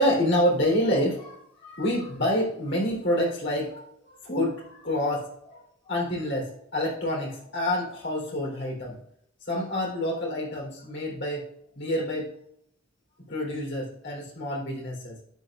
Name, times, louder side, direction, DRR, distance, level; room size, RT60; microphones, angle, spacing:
voice 1, 0.0-9.0 9.5-11.5 11.8-12.3 13.3-15.2, equal, 55° left, -2 dB, 3.6 m, -27 dB
12.0 x 7.9 x 2.5 m, 0.72 s
head